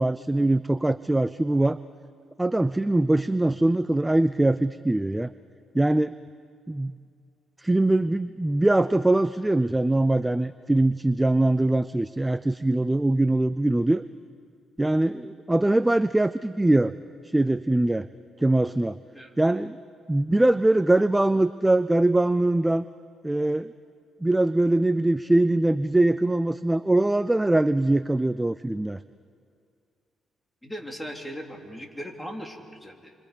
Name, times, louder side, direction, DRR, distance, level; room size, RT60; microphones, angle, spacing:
voice 1, 0.0-1.8 2.4-5.3 5.7-6.1 6.7-7.0 7.6-14.0 14.8-16.9 17.2-18.1 18.4-19.0 19.4-19.8 20.1-22.9 23.2-23.7 24.2-29.0, right 2 dB, 10° right, 13 dB, 0.5 m, -22 dB
voice 2, 30.6-33.1, equal, 5° left, 1 dB, 3.3 m, -38 dB
28.5 x 24.5 x 5.2 m, 2.3 s
cardioid pair, 90°, 0 cm